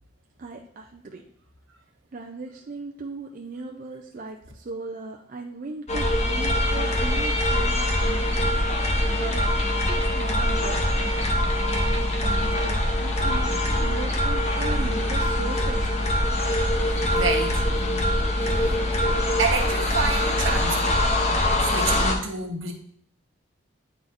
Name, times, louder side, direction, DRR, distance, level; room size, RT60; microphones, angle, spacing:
voice 1, 0.4-1.2 2.1-8.5 8.8-9.5 9.9-11.3 12.2-16.1, right 3 dB, 40° right, 1 dB, 0.4 m, -37 dB
sound 1, 5.9-22.1, left 1 dB, 30° left, 0.7 m, -23 dB
voice 2, 16.8-19.0 19.4-21.0 21.6-22.7, right 4 dB, 75° right, 2 dB, 1.1 m, -30 dB
9.1 x 4.1 x 2.5 m, 0.65 s
head